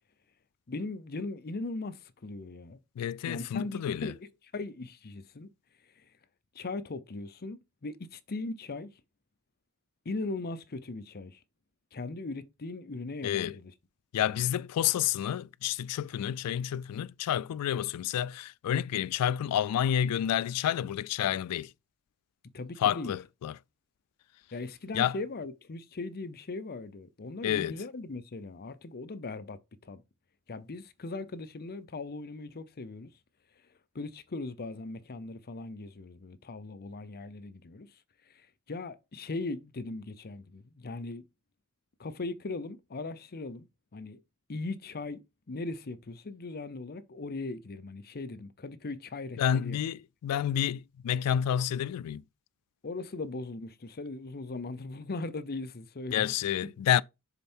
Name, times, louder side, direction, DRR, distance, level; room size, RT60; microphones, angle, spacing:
voice 1, 0.7-2.8 3.2-4.3 4.5-5.5 6.0-6.1 6.5-8.9 10.0-11.4 11.9-13.7 22.5-23.1 24.5-30.0 30.5-33.1 33.9-38.0 38.3-41.3 42.0-43.7 43.9-44.2 44.5-45.2 45.5-49.8 52.8-56.3, left 3 dB, 45° left, 0.7 m, -39 dB
voice 2, 3.0-4.1 13.2-13.6 14.1-21.7 22.8-23.5 24.9-25.2 27.4-27.8 49.4-52.2 56.1-57.0, left 10 dB, 90° left, 0.3 m, -29 dB
6.8 x 4.4 x 4.4 m
head